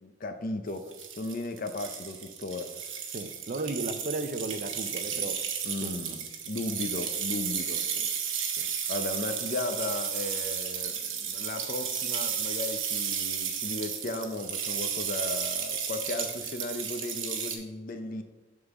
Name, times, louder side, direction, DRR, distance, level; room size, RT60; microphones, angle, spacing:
voice 1, 0.0-2.8 5.7-7.8 8.9-18.2, left 2 dB, 45° left, 0.6 m, -36 dB
sound 1, 0.8-17.6, right 7 dB, 85° right, 0.9 m, -33 dB
voice 2, 3.1-5.4 5.8-6.1 8.0-8.1 8.6-8.7, right 2 dB, 45° right, 0.5 m, -35 dB
6.6 x 3.8 x 6.0 m
head